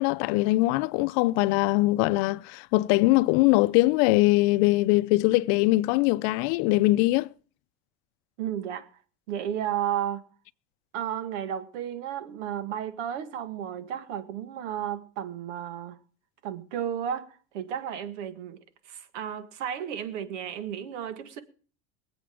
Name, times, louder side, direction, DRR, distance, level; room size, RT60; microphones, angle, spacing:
voice 1, 0.0-7.3, left 20 dB, 65° left, 0.6 m, -22 dB
voice 2, 8.4-8.9 9.3-10.2 10.9-16.0 16.4-21.4, right 9 dB, 90° right, 1.7 m, -33 dB
23.0 x 8.1 x 5.0 m
supercardioid pair, 135°, 35 cm